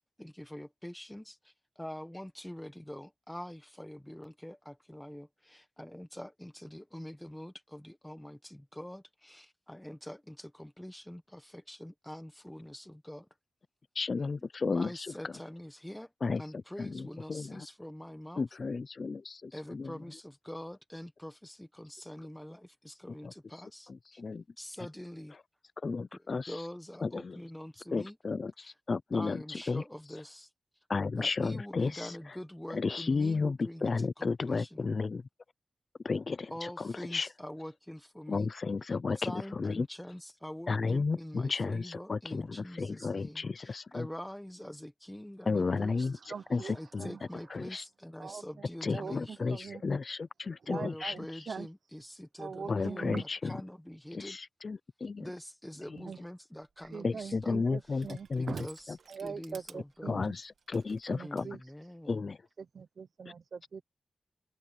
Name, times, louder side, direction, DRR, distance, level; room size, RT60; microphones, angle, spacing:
voice 1, 0.2-13.3 14.6-18.4 19.5-24.2 24.6-25.4 26.1-28.2 28.6-28.7 29.1-30.5 31.1-34.9 36.5-38.5 39.1-46.1 46.6-49.7 50.6-54.4 55.2-57.6 58.4-58.8 59.2-60.2 61.2-62.3, left 1 dB, 5° left, 1.2 m, -45 dB
voice 2, 14.0-15.1 16.2-17.7 18.4-19.9 23.2-23.3 23.9-24.4 25.8-26.5 27.0-27.4 27.9-29.8 30.9-32.1 32.7-35.2 36.0-37.3 38.3-39.9 40.7-44.1 45.5-46.2 46.5-47.1 47.5-47.8 48.8-49.6 49.8-51.1 52.7-53.5 54.1-55.3 57.0-58.5 60.1-61.5 62.1-62.4, left 4 dB, 40° left, 0.5 m, -33 dB
voice 3, 45.5-47.2 48.2-49.8 50.6-51.7 52.4-53.2 56.0-56.2 56.9-58.7 59.1-60.3 61.1-61.6 62.6-63.8, right 6 dB, 60° right, 0.8 m, -43 dB
Crushing, 56.7-61.5, right 6 dB, 85° right, 2.0 m, -57 dB
wide cardioid pair, 175°, 0 cm